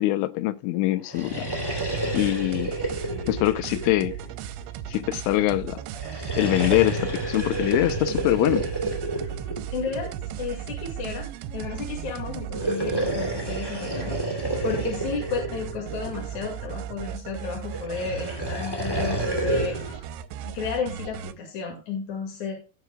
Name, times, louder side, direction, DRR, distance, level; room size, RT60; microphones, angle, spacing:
voice 1, 0.0-1.5 2.1-2.7 3.3-4.2 4.9-5.8 6.4-8.7, left 16 dB, 85° left, 3.1 m, -23 dB
sound 1, 1.0-4.6 5.9-10.2 12.4-16.4 17.7-20.0, right 1 dB, 10° left, 1.1 m, -30 dB
sound 2, 1.7-21.3, right 10 dB, 80° right, 2.9 m, -36 dB
voice 2, 9.7-10.1 10.4-20.0 20.4-22.5, left 5 dB, 50° left, 2.7 m, -32 dB
15.5 x 7.6 x 2.3 m
omnidirectional pair, 5.6 m